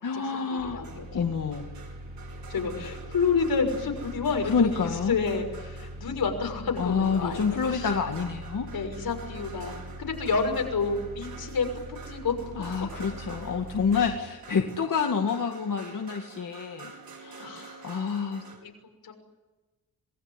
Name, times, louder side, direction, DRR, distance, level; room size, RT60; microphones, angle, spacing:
voice 1, 0.0-0.8 1.1-1.7 4.4-5.2 6.8-8.7 12.6-16.9 17.2-18.4, left 6 dB, 60° left, 3 dB, 2.2 m, -28 dB
sound 1, 0.6-14.2, right 1 dB, 25° right, 3.7 m, -42 dB
voice 2, 0.7-1.2 2.5-4.7 5.1-7.9 8.7-12.3 13.9-14.0 17.4-17.8 18.6-18.7 19.0-19.1, left 5 dB, 85° left, 4 dB, 6.3 m, -29 dB
sound 2, 0.8-6.2 6.7-18.6, right 5 dB, 85° right, 5.5 m, -48 dB
27.0 x 20.5 x 10.0 m, 1.1 s
wide cardioid pair, 150°, 35 cm